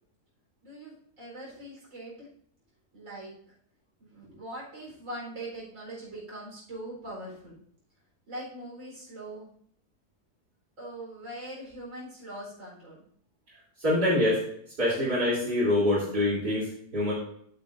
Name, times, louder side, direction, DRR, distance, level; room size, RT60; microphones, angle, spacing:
voice 1, 0.6-2.3 2.9-3.3 4.0-7.6 8.3-9.5 10.8-13.0, right 1 dB, 50° right, -5 dB, 4.5 m, -41 dB
voice 2, 13.8-14.4 14.8-17.1, left 1 dB, 70° right, -9 dB, 4.0 m, -25 dB
10.5 x 8.8 x 2.6 m, 0.64 s
omnidirectional pair, 1.8 m